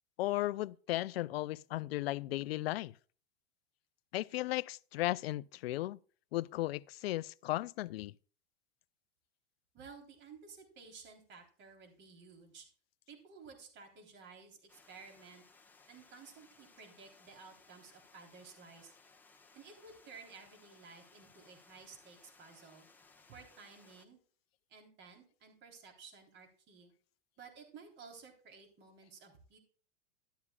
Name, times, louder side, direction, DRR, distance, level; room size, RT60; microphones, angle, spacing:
voice 1, 0.2-2.9 4.1-6.0 6.3-8.1, left 17 dB, 80° left, 0.5 m, -35 dB
voice 2, 9.7-12.7 13.1-15.4 15.9-18.9 19.5-22.9 23.3-24.2 24.7-26.9 27.4-29.6, right 5 dB, 35° right, 3.5 m, -55 dB
Water, 14.7-24.1, left 4 dB, 5° left, 1.1 m, -63 dB
12.5 x 11.5 x 2.3 m
supercardioid pair, 125°, 29 cm